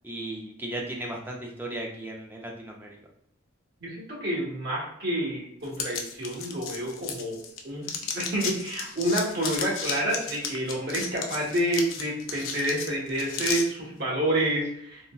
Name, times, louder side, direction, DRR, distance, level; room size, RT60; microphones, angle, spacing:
voice 1, 0.0-3.0, right 1 dB, 10° right, -1 dB, 0.3 m, -36 dB
voice 2, 3.8-7.4 7.6-7.9 8.1-15.1, right 1 dB, 55° right, -4 dB, 1.1 m, -28 dB
sound 1, 5.7-7.6 7.8-13.6, left 6 dB, 75° left, 0.4 m, -34 dB
3.7 x 2.1 x 2.2 m, 0.73 s
head